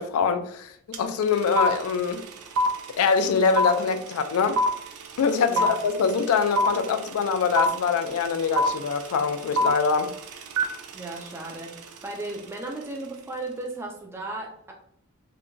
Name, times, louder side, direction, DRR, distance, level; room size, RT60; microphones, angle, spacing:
voice 1, 0.0-2.2 3.0-4.6 5.2-10.1, left 5 dB, 75° left, 0.3 m, -24 dB
sound 1, 0.9-1.0 1.2-12.4, equal, 85° right, 0.4 m, -26 dB
voice 2, 5.5-5.8 10.9-14.7, right 2 dB, 10° right, 0.3 m, -35 dB
2.8 x 2.2 x 2.5 m
head